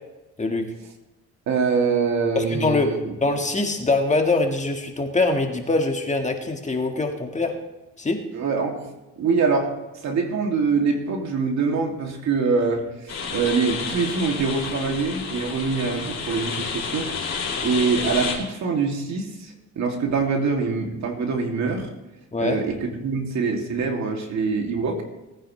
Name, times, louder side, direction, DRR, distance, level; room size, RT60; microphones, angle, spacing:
voice 1, 0.4-0.7 2.3-2.9 3.2-7.5 8.0-8.2 22.3-22.6, left 3 dB, 25° left, 4 dB, 1.7 m, -23 dB
voice 2, 1.5-3.1 8.3-8.8 9.2-9.7 10.0-17.1 17.6-21.9 22.4-25.0, right 4 dB, 65° right, 2 dB, 2.7 m, -24 dB
sound 1, 13.1-18.3, left 5 dB, 60° left, 4.2 m, -30 dB
19.0 x 9.7 x 3.3 m, 1.0 s
cardioid pair, 90°, 30 cm